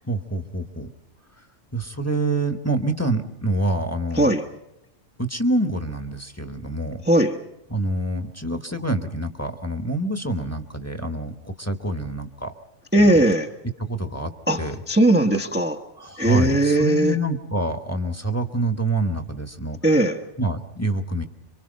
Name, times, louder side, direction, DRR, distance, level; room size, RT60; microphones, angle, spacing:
voice 1, 0.0-0.9 1.7-4.3 5.2-7.0 7.7-12.5 13.0-13.2 13.8-14.3 14.6-14.8 16.0-19.8 20.4-21.2, right 2 dB, 15° left, 7 dB, 1.3 m, -26 dB
voice 2, 7.1-7.4 12.9-13.5 14.5-15.8 16.2-17.2 19.8-20.2, right 1 dB, 10° right, 3 dB, 1.0 m, -19 dB
27.0 x 24.5 x 5.3 m, 0.87 s
omnidirectional pair, 1.2 m